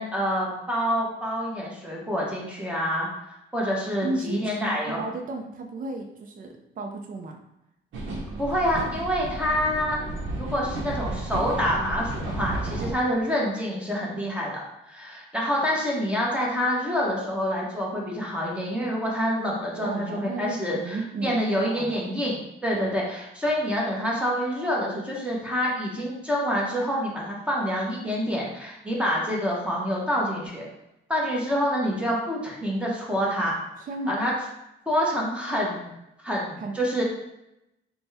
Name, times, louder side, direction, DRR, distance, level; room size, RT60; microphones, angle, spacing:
voice 1, 0.0-5.0 8.4-10.0 10.4-30.7 31.1-33.6 34.1-34.3 34.9-35.9 36.2-37.0, equal, 5° right, -4 dB, 1.1 m, -27 dB
voice 2, 4.0-7.4 19.7-21.4 21.6-22.0 22.7-23.0 33.8-34.2 36.6-36.8, right 2 dB, 45° right, 2 dB, 0.5 m, -33 dB
sound 1, 7.9-12.9, right 2 dB, 75° right, 0.8 m, -32 dB
4.0 x 2.3 x 3.4 m, 0.86 s
cardioid pair, 90°, 20 cm